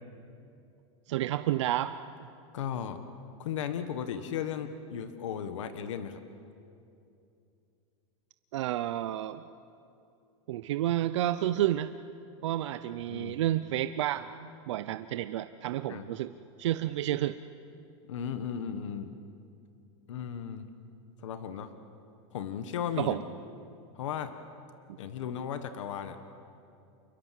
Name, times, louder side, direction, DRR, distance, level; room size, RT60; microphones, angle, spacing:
voice 1, 1.1-1.9 8.5-9.4 10.5-11.9 12.4-14.4 14.7-16.3 16.6-17.4 23.0-23.2, right 13 dB, 70° right, 11 dB, 0.7 m, -30 dB
voice 2, 2.5-3.0 3.4-6.2 13.1-13.4 15.9-16.1 18.1-19.2 20.1-20.7 21.2-21.7 22.3-23.2 23.9-24.3 25.0-26.2, left 8 dB, 90° left, 9 dB, 1.6 m, -35 dB
28.5 x 22.0 x 7.7 m, 2.7 s
supercardioid pair, 165°, 15 cm